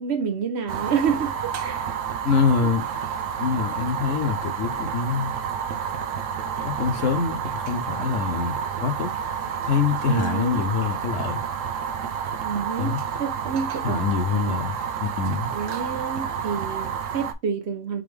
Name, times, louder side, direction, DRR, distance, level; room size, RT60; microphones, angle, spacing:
voice 1, 0.0-2.0 10.1-10.6 12.4-14.5 15.5-18.0, right 6 dB, 60° right, 1.1 m, -29 dB
Fire, 0.7-17.3, right 7 dB, 80° right, 1.1 m, -30 dB
voice 2, 2.2-2.9 3.4-5.4 6.6-9.1 9.7-11.4 12.8-13.0 13.8-15.5, left 5 dB, 80° left, 1.2 m, -25 dB
4.0 x 3.9 x 3.3 m
omnidirectional pair, 1.3 m